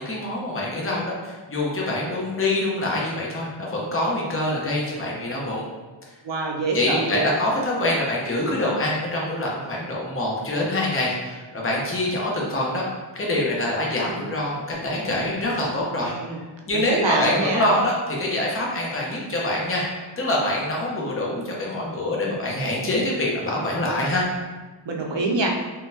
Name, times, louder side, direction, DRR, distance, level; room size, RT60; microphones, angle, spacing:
voice 1, 0.0-5.6 6.7-12.9 13.1-16.1 16.7-19.9 20.2-24.2, left 1 dB, 25° left, -3 dB, 0.7 m, -25 dB
voice 2, 6.2-7.2 15.9-16.4 16.7-17.7 24.9-25.5, right 3 dB, 65° right, 0 dB, 0.6 m, -25 dB
3.7 x 2.2 x 2.6 m, 1.3 s
wide cardioid pair, 45°, 49 cm